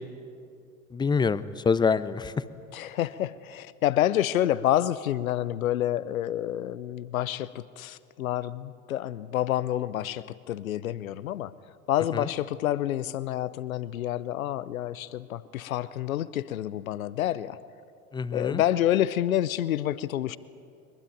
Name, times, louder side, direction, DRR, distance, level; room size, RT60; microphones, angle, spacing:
voice 1, 0.9-2.3 12.1-12.3 18.1-18.6, left 5 dB, 10° left, 17 dB, 0.6 m, -26 dB
voice 2, 2.7-11.5 11.9-17.6 18.3-20.4, left 12 dB, 70° left, 18 dB, 0.8 m, -28 dB
23.0 x 21.5 x 9.1 m, 2.4 s
figure-of-eight pair, 80°, 43 cm